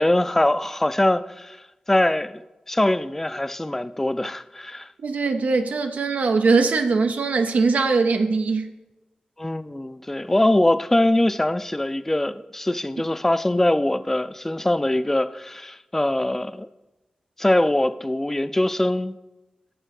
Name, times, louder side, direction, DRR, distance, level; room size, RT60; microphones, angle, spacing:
voice 1, 0.0-1.6 1.9-2.4 2.7-4.9 9.4-16.7 17.4-19.2, left 1 dB, 15° left, 0.3 m, -22 dB
voice 2, 5.0-8.7, right 4 dB, 80° right, 0.6 m, -21 dB
10.0 x 3.6 x 5.9 m
wide cardioid pair, 80°, 3 cm